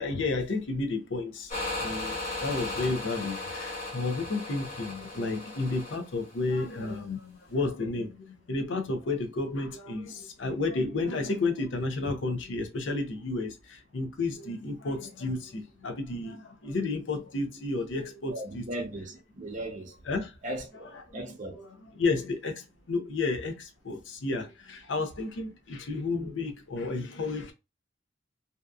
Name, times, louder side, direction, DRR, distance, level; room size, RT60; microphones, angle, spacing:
voice 1, 0.0-1.5 1.8-18.6 20.1-20.4 20.9-21.2 21.5-27.5, left 3 dB, 85° left, 0.6 m, -32 dB
sound 1, 1.5-7.0, left 2 dB, 50° left, 1.4 m, -37 dB
voice 2, 18.3-19.9 20.4-21.6, right 1 dB, 45° right, 0.6 m, -37 dB
2.7 x 2.3 x 2.2 m
head